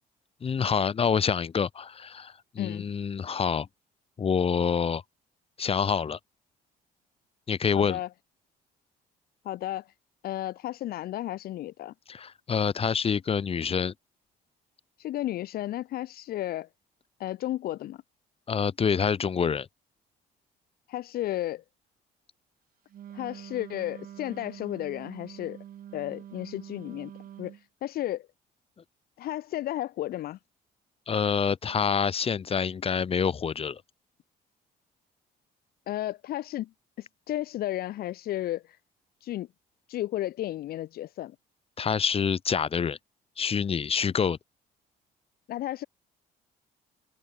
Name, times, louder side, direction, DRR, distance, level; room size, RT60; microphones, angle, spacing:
voice 1, 0.4-3.7 4.2-5.0 5.6-6.2 7.5-8.0 12.1-13.9 18.5-19.7 31.1-33.8 41.8-43.0 43.4-44.4, left 6 dB, 35° left, 2.5 m, -27 dB
voice 2, 7.7-8.1 9.4-9.9 10.2-11.9 15.0-16.7 17.2-18.0 20.9-21.6 23.1-25.6 25.9-27.1 27.4-28.3 29.2-30.4 35.9-36.7 37.0-38.8 39.2-39.5 39.9-41.4 45.5-45.9, left 14 dB, 65° left, 0.9 m, -33 dB
Wind instrument woodwind instrument, 22.9-27.6, right 10 dB, 60° right, 6.8 m, -45 dB
cardioid pair, 110°, 17 cm